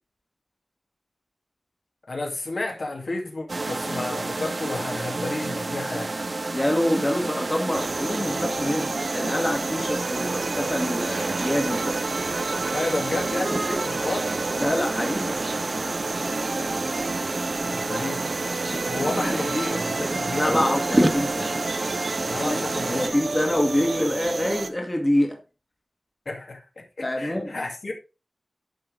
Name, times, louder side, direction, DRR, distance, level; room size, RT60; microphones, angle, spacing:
voice 1, 2.1-6.1 12.7-14.3 17.6-18.2 18.9-20.6 22.3-23.2 26.3-27.9, left 2 dB, 70° left, 2.3 m, -31 dB
sound 1, 3.5-23.1, right 2 dB, 40° right, 0.3 m, -30 dB
voice 2, 6.5-12.0 14.6-15.3 19.2-19.3 20.4-21.6 22.4-22.6 22.9-25.4 27.0-27.6, left 1 dB, 20° left, 1.6 m, -26 dB
sound 2, 7.7-24.7, right 3 dB, 65° right, 0.9 m, -31 dB
sound 3, 13.4-13.7 14.0-14.3 14.6-16.4 17.1-17.4 17.7-19.5 20.0-21.1, right 1 dB, 15° right, 1.3 m, -27 dB
10.5 x 5.4 x 3.8 m
wide cardioid pair, 95°, 0 cm